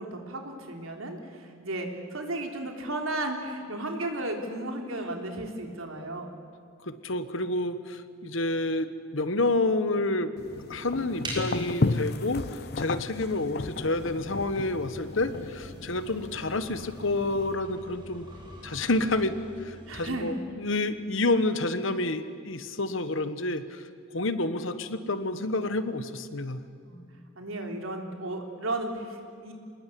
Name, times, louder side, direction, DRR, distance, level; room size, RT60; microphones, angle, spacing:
voice 1, 0.0-6.3 19.9-20.4 26.8-27.0 27.4-29.5, right 1 dB, 75° right, 3 dB, 3.4 m, -34 dB
voice 2, 6.8-10.3 10.7-18.3 18.6-23.8 24.1-26.6, left 2 dB, 65° left, 11 dB, 1.3 m, -29 dB
sound 1, 10.4-17.5, left 3 dB, 50° left, 0.7 m, -34 dB
sound 2, 11.2-20.4, right 1 dB, 20° right, 6.3 m, -44 dB
26.5 x 20.0 x 8.6 m, 2.3 s
head